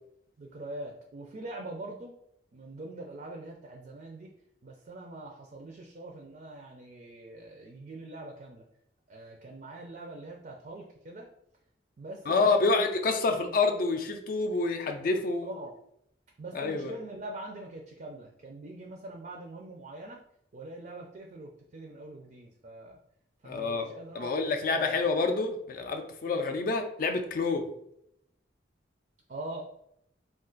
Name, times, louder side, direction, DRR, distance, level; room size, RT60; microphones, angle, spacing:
voice 1, 0.4-2.1 2.5-4.3 4.6-8.6 9.1-11.3 12.0-12.9 15.4-15.7 16.4-20.2 20.5-23.0 23.4-25.0 26.2-26.4 29.3-29.6, right 2 dB, 45° right, 1 dB, 0.4 m, -43 dB
voice 2, 12.3-15.5 16.5-16.9 23.4-23.9 24.1-27.7, left 3 dB, 50° left, 6 dB, 0.4 m, -28 dB
2.4 x 2.4 x 3.7 m, 0.76 s
head